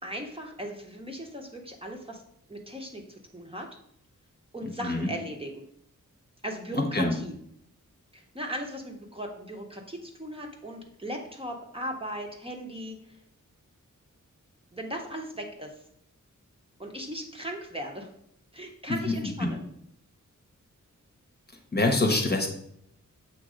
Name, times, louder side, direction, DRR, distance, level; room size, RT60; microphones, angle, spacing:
voice 1, 0.0-2.2 2.5-3.0 3.3-3.7 4.5-5.6 6.4-7.3 8.1-13.0 14.7-15.7 16.8-18.1 18.5-19.7, equal, 20° right, 1 dB, 0.8 m, -37 dB
voice 2, 6.7-7.1 19.4-19.5 21.7-22.5, left 2 dB, 30° left, 3 dB, 1.0 m, -24 dB
7.3 x 3.0 x 5.0 m, 0.71 s
wide cardioid pair, 120°, 31 cm